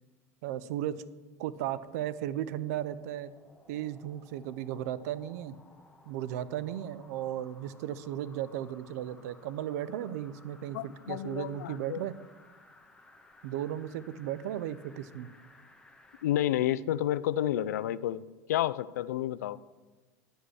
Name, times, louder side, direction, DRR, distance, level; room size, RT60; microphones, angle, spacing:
voice 1, 0.4-1.0 1.4-3.3 3.7-5.6 6.1-10.8 11.1-12.1 13.4-15.3, right 11 dB, 75° right, 16 dB, 0.5 m, -35 dB
sound 1, 1.3-16.3 16.8-16.9, left 2 dB, 10° left, 1.1 m, -59 dB
voice 2, 10.7-12.0 16.2-18.2 18.5-19.6, left 12 dB, 90° left, 18 dB, 0.3 m, -30 dB
9.9 x 5.2 x 6.3 m, 1.2 s
supercardioid pair, 105°, 9 cm